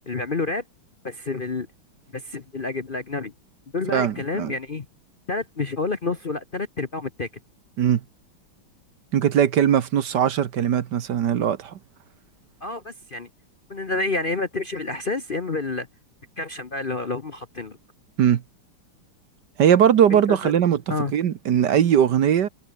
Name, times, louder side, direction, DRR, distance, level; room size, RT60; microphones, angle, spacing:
voice 1, 0.1-0.6 1.0-1.7 2.1-3.3 3.7-4.9 5.3-7.3 12.6-13.3 13.7-15.9 16.4-17.8 20.1-20.4 20.9-21.1, left 3 dB, 35° left, 0.9 m, -29 dB
voice 2, 3.9-4.5 7.8-8.0 9.1-11.7 18.2-18.4 19.6-20.8 21.1-22.5, right 9 dB, 60° right, 1.6 m, -20 dB
omnidirectional pair, 2.2 m